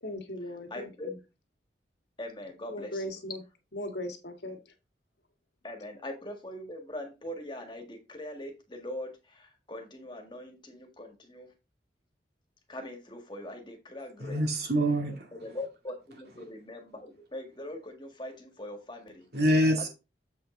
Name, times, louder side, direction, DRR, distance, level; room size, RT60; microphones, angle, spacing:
voice 1, 0.0-1.2 2.7-3.4 3.7-4.7, left 1 dB, 75° left, 1.7 m, -38 dB
voice 2, 0.7-1.1 2.2-3.0 5.6-11.5 12.7-14.7 15.4-19.3 19.8-19.9, left 1 dB, 25° left, 1.7 m, -42 dB
voice 3, 14.2-15.3 19.3-19.9, equal, 65° right, 2.4 m, -25 dB
7.8 x 5.5 x 3.8 m
head